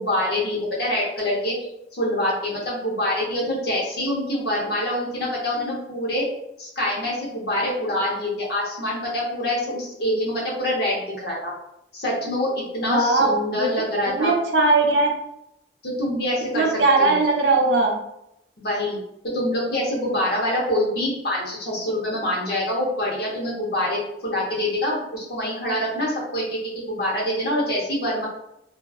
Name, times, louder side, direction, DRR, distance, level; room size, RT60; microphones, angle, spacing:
voice 1, 0.0-1.5 1.9-6.3 6.6-11.5 11.9-14.3 15.8-17.2 18.6-19.0 19.3-28.3, left 1 dB, 65° left, -4 dB, 0.8 m, -25 dB
voice 2, 12.9-13.7 14.1-15.1 16.5-17.9, right 3 dB, 70° right, 1 dB, 0.5 m, -19 dB
2.7 x 2.3 x 2.3 m, 0.81 s
head